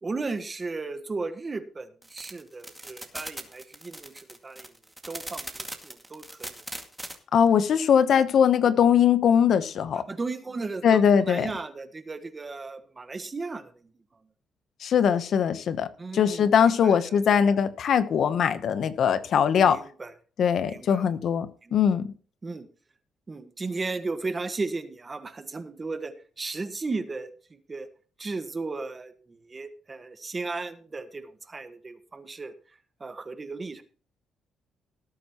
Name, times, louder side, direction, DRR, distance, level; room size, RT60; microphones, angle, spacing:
voice 1, 0.0-4.7 5.1-6.5 10.1-13.7 16.0-17.4 19.6-20.1 20.7-21.1 21.6-21.8 22.4-22.7 23.3-27.9 28.2-32.5 33.0-33.8, right 3 dB, 30° right, 9 dB, 1.4 m, -35 dB
sound 1, 2.0-7.2, right 1 dB, 5° right, 2.1 m, -39 dB
voice 2, 7.3-10.0 10.8-11.5 14.8-15.9 16.1-19.8 20.4-22.1, left 8 dB, 65° left, 12 dB, 0.9 m, -21 dB
18.0 x 9.0 x 3.0 m, 0.41 s
cardioid pair, 90°, 0 cm